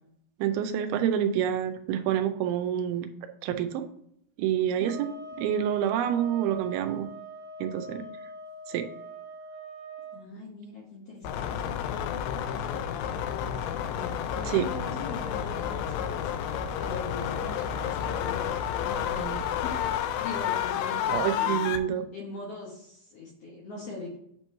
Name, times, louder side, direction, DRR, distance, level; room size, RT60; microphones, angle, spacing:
voice 1, 0.4-3.1 3.4-3.9 4.4-5.1 5.4-7.1 7.6-8.0 8.7-8.9 14.5-14.7 19.1-19.4 21.1-22.0, right 10 dB, 90° right, 7 dB, 2.5 m, -27 dB
sound 1, 4.8-10.2, right 2 dB, 70° right, 2.9 m, -43 dB
voice 2, 10.1-11.7 13.8-16.3 16.8-21.8 22.1-24.2, left 2 dB, 60° left, -4 dB, 1.8 m, -41 dB
sound 2, 11.2-21.8, left 9 dB, 80° left, 2.3 m, -30 dB
8.1 x 3.0 x 5.5 m, 0.72 s
omnidirectional pair, 4.4 m